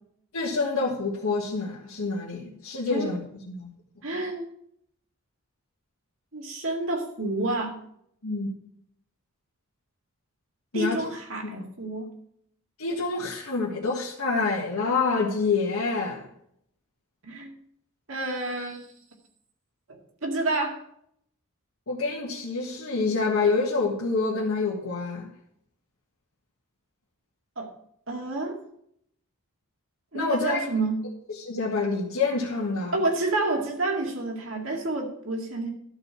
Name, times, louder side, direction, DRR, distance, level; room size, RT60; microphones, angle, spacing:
voice 1, 0.3-3.2 3.5-3.7 8.2-8.5 10.7-11.0 11.4-11.6 12.8-16.3 21.9-25.3 30.1-30.7 31.3-33.0, left 4 dB, 75° left, 1.7 m, -27 dB
voice 2, 4.0-4.4 6.3-7.8 10.7-12.1 17.2-17.5 18.1-18.8 19.9-20.8 27.6-27.7 28.1-28.6 30.1-31.0 32.9-35.7, right 2 dB, 65° right, 2.1 m, -29 dB
12.0 x 4.6 x 7.0 m
head